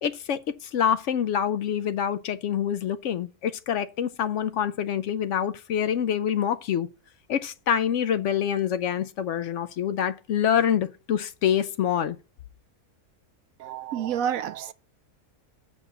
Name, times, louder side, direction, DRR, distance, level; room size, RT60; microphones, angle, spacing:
voice 1, 0.0-6.9 7.3-12.2, left 9 dB, 70° left, 0.7 m, -26 dB
voice 2, 13.6-14.7, right 9 dB, 70° right, 0.9 m, -29 dB
7.0 x 4.6 x 6.8 m
omnidirectional pair, 1.6 m